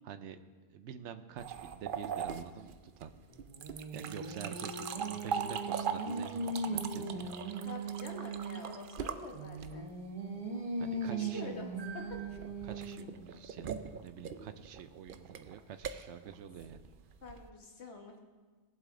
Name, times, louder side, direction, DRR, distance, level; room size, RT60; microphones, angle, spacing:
voice 1, 0.0-0.4 0.7-3.1 3.7-7.3 7.6-7.7 10.8-11.6 12.3-16.8, right 8 dB, 90° right, 10 dB, 1.0 m, -47 dB
sound 1, 1.4-10.0 11.8-17.5, right 7 dB, 55° right, 0.7 m, -41 dB
Singing, 3.3-8.7 9.3-13.2, right 3 dB, 30° right, 1.1 m, -39 dB
voice 2, 7.6-9.9 10.9-12.2 17.2-18.2, left 2 dB, 70° left, 2 dB, 1.7 m, -46 dB
19.5 x 7.6 x 3.8 m, 1.3 s
omnidirectional pair, 1.2 m